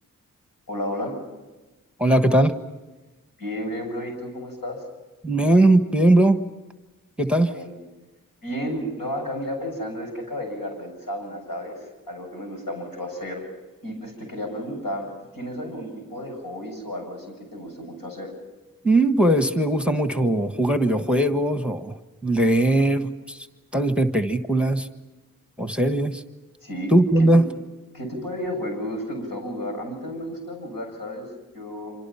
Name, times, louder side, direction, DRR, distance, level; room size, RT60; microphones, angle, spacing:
voice 1, 0.7-1.2 3.4-4.8 7.5-7.8 8.4-13.5 13.8-18.3 26.6-27.4 27.9-31.3 31.5-32.0, equal, 80° left, 2 dB, 7.7 m, -32 dB
voice 2, 2.0-2.5 5.2-6.4 7.2-7.5 18.8-22.0 22.2-23.4 23.7-24.9 25.6-26.2 26.9-27.4, right 1 dB, 5° right, 8 dB, 1.4 m, -19 dB
27.0 x 26.5 x 5.8 m, 1.2 s
cardioid pair, 50°, 34 cm